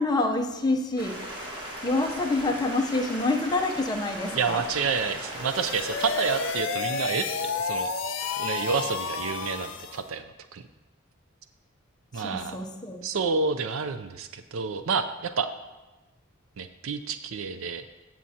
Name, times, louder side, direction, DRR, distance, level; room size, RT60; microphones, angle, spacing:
voice 1, 0.0-1.6 1.8-4.6 12.1-13.0, left 2 dB, 20° left, 2 dB, 0.7 m, -27 dB
Stream, 1.0-6.5, equal, 20° right, 1.5 m, -38 dB
voice 2, 4.3-7.9 8.4-10.6 12.1-12.6 13.0-15.5 16.6-17.8, right 5 dB, 75° right, 11 dB, 0.5 m, -29 dB
sound 1, 5.3-10.1, left 5 dB, 60° left, 0.5 m, -31 dB
14.5 x 7.5 x 2.8 m, 1.1 s
head